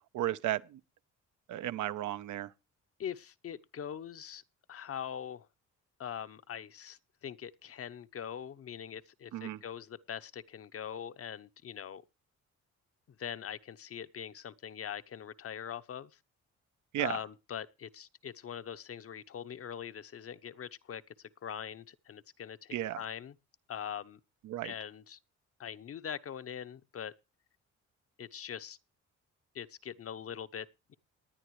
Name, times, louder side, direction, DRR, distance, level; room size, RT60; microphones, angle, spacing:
voice 1, 0.1-0.8 1.5-2.5 9.3-9.6 16.9-17.2 22.7-23.0 24.4-24.7, right 13 dB, 80° right, 0.8 m, -34 dB
voice 2, 3.0-4.4 4.7-5.5 6.0-12.0 13.2-16.2 17.0-23.4 23.7-24.2 24.6-25.2 25.6-27.1 28.2-28.8 29.5-30.9, left 8 dB, 50° left, 0.9 m, -42 dB
19.0 x 10.0 x 3.2 m
cardioid pair, 90°, 30 cm